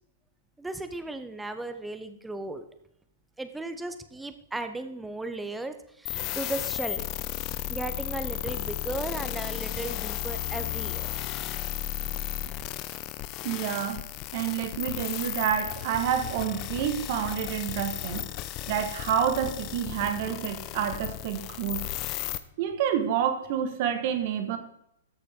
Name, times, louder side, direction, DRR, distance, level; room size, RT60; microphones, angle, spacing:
voice 1, 0.6-2.7 3.4-7.1 7.7-11.1, right 2 dB, 5° right, 9 dB, 0.8 m, -36 dB
sound 1, 6.1-22.4, left 13 dB, 35° left, 0.6 m, -34 dB
voice 2, 13.4-14.0 14.3-18.3 18.7-21.8 22.6-24.6, right 9 dB, 50° right, 8 dB, 1.5 m, -28 dB
13.0 x 6.6 x 3.7 m, 0.75 s
hypercardioid pair, 115°, 0 cm